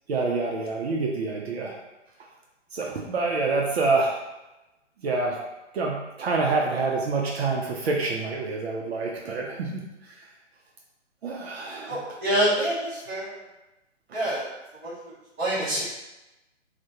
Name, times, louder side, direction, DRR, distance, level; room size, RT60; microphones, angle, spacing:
voice 1, 0.1-1.8 2.7-4.2 5.0-5.4 5.7-10.3 11.2-12.0 14.1-14.2, right 3 dB, 60° right, -1 dB, 0.5 m, -27 dB
voice 2, 11.9-13.3 14.1-14.5 14.8-14.9 15.4-15.8, right 1 dB, 15° right, -11 dB, 0.6 m, -26 dB
2.2 x 2.1 x 2.7 m, 1.0 s
hypercardioid pair, 145°, 37 cm